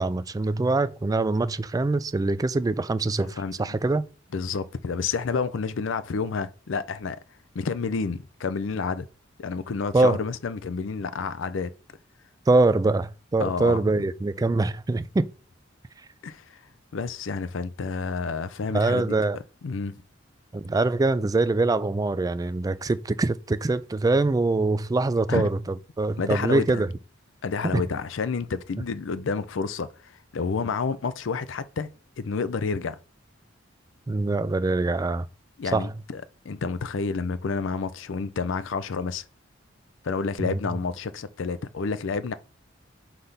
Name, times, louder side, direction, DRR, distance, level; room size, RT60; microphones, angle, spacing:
voice 1, 0.0-4.0 9.9-10.2 12.5-15.3 18.7-19.4 20.5-26.9 27.7-27.8 34.1-35.3 35.7-35.9 40.4-40.6, right 3 dB, 20° right, 0.3 m, -24 dB
voice 2, 3.4-3.7 4.3-7.2 7.5-9.1 9.4-11.7 13.4-14.0 16.2-16.6 16.9-19.1 19.6-20.0 25.3-25.5 26.2-26.8 27.4-31.9 32.2-33.0 35.6-39.2 40.0-42.3, left 5 dB, 70° left, 0.5 m, -29 dB
5.8 x 3.3 x 5.5 m
head